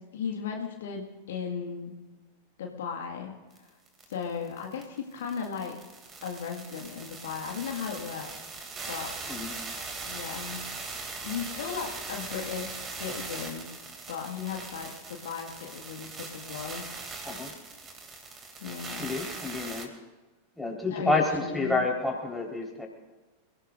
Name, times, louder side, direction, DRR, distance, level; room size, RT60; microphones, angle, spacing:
voice 1, 0.0-2.0 2.6-3.7 4.1-5.8 6.2-8.3 8.9-9.1 10.0-10.7 11.2-13.7 14.1-16.8 18.6-19.1 20.9-21.8, left 6 dB, 60° left, 1 dB, 1.9 m, -36 dB
sound 1, 3.6-3.7 3.9-19.9, right 4 dB, 20° right, 2.7 m, -40 dB
voice 2, 18.9-19.9 20.6-22.9, left 3 dB, 5° left, -2 dB, 4.4 m, -29 dB
28.5 x 17.0 x 2.6 m, 1.2 s
figure-of-eight pair, 90°, 0 cm